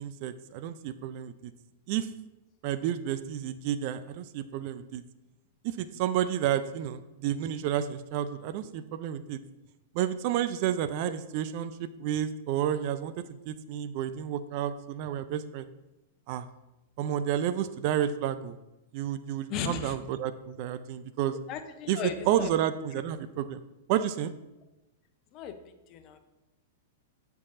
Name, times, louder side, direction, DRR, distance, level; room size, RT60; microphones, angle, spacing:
voice 1, 0.0-1.5 1.9-2.1 2.6-5.0 5.6-9.4 9.9-15.7 16.3-16.5 17.0-18.5 18.9-21.4 21.9-23.6 23.9-24.3, right 10 dB, 50° right, 13 dB, 0.3 m, -31 dB
voice 2, 19.5-20.0 21.3-22.5 22.9-23.0 25.3-25.6 25.9-26.2, left 8 dB, 40° left, 9 dB, 0.6 m, -36 dB
8.4 x 4.6 x 2.6 m, 0.98 s
hypercardioid pair, 105°, 0 cm